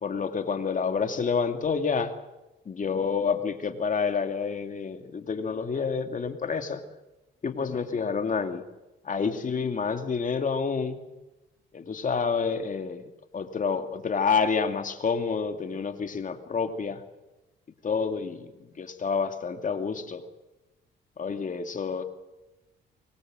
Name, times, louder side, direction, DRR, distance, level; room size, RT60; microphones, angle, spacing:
voice 1, 0.0-2.1 2.6-6.8 7.4-8.6 9.0-11.0 11.7-17.0 17.8-20.3 21.2-22.0, left 5 dB, 40° left, 7 dB, 2.6 m, -28 dB
24.5 x 22.0 x 7.8 m, 1.0 s
cardioid pair, 90°, 20 cm